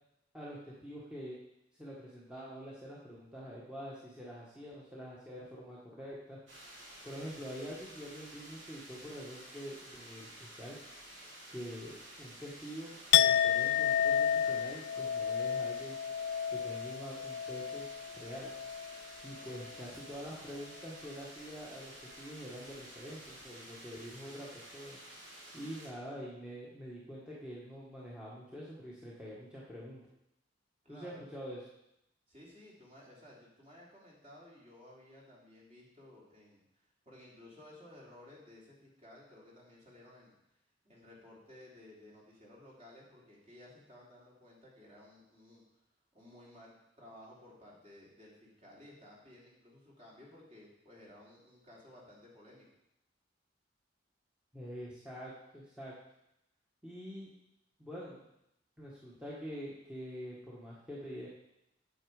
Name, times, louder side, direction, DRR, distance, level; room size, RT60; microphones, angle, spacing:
voice 1, 0.3-1.4 1.8-6.4 7.0-10.8 11.5-11.9 12.2-16.0 16.5-17.9 18.1-18.5 19.2-25.0 25.5-30.0 30.9-31.6 54.5-55.9 56.8-57.3 57.8-58.2 58.8-61.3, equal, 5° right, -7 dB, 1.5 m, -45 dB
sound 1, 6.5-25.9, right 1 dB, 85° right, 3.0 m, -52 dB
Chink clink, 13.1-19.1 19.4-19.8, left 9 dB, 65° left, 0.3 m, -31 dB
voice 2, 19.4-19.8 30.8-31.3 32.3-36.6 37.0-40.4 40.8-45.6 46.1-52.7, left 1 dB, 35° right, -5 dB, 3.2 m, -56 dB
8.7 x 8.1 x 4.9 m, 0.83 s
head